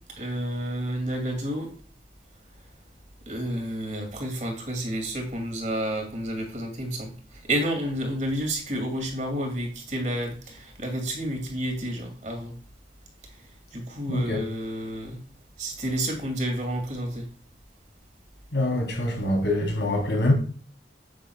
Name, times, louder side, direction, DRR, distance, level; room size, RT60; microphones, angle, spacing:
voice 1, 0.2-1.7 3.3-12.5 13.7-15.2 15.6-17.3, right 1 dB, 40° right, 2.4 m, -30 dB
voice 2, 14.1-14.4 18.5-20.3, left 1 dB, 75° left, 3.4 m, -24 dB
9.2 x 8.3 x 2.3 m
head